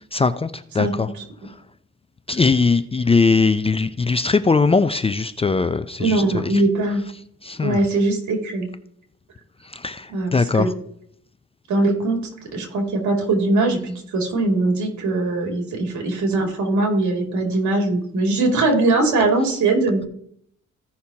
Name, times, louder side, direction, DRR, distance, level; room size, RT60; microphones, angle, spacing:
voice 1, 0.1-1.1 2.3-6.5 7.4-7.8 9.7-10.7, left 4 dB, 20° left, 12 dB, 0.4 m, -20 dB
voice 2, 0.8-1.2 6.0-7.0 7.6-8.7 10.1-10.7 11.7-20.1, right 2 dB, 70° right, 2 dB, 2.7 m, -21 dB
15.5 x 5.8 x 2.8 m, 0.67 s
cardioid pair, 90°, 30 cm